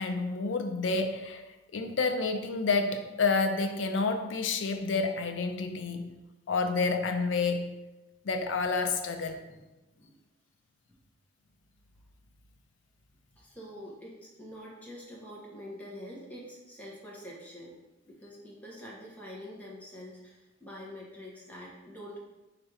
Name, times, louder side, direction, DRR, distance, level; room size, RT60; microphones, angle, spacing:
voice 1, 0.0-1.4 1.7-6.1 6.5-7.7 8.2-9.4, left 4 dB, 85° left, 6 dB, 0.5 m, -29 dB
voice 2, 13.4-17.8 18.1-22.2, equal, 10° left, -4 dB, 1.0 m, -46 dB
4.2 x 2.5 x 4.7 m, 1.0 s
head